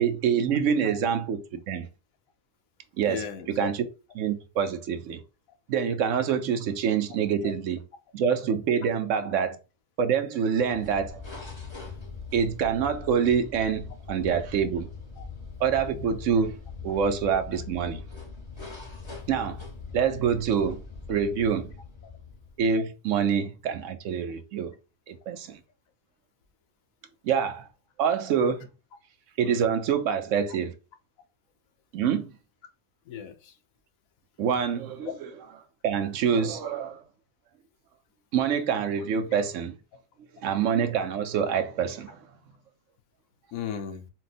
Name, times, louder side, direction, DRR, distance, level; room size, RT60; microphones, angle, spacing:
voice 1, 0.0-1.9 3.0-3.8 4.2-5.2 5.7-7.8 8.1-9.6 10.0-11.2 12.3-14.9 15.6-16.6 16.8-18.0 19.3-19.6 19.9-20.8 21.1-21.7 22.6-24.7 25.1-25.6 27.2-27.7 28.0-28.7 29.4-30.7 31.9-32.3 34.4-35.1 35.8-37.0 38.3-39.8 40.4-42.2, right 7 dB, 70° right, 1.0 m, -26 dB
voice 2, 3.1-3.7 7.4-7.5 15.2-15.3 19.2-19.3 33.1-33.5 35.0-35.1 43.5-44.1, left 8 dB, 90° left, 1.2 m, -36 dB
sound 1, 10.6-22.8, left 4 dB, 25° left, 0.9 m, -41 dB
4.2 x 2.3 x 4.0 m
omnidirectional pair, 1.4 m